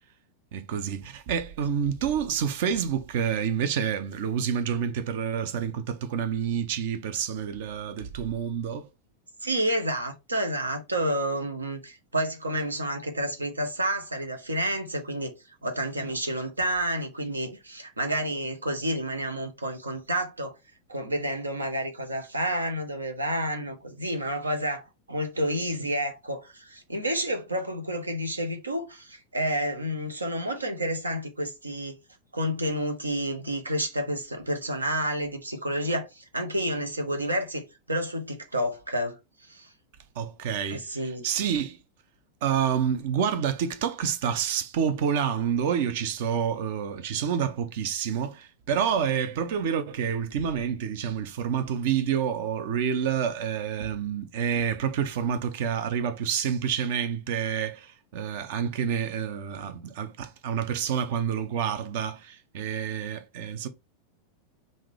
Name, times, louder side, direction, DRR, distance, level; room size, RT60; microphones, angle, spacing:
voice 1, 0.5-8.9 40.2-40.9 41.2-41.8 42.4-63.7, right 8 dB, 50° right, 0.6 m, -28 dB
voice 2, 9.4-15.3 15.6-20.6 20.9-24.8 25.1-31.9 32.3-39.7 40.7-41.3, right 1 dB, 80° right, 0.9 m, -30 dB
3.7 x 2.7 x 4.6 m
figure-of-eight pair, 90°, 0 cm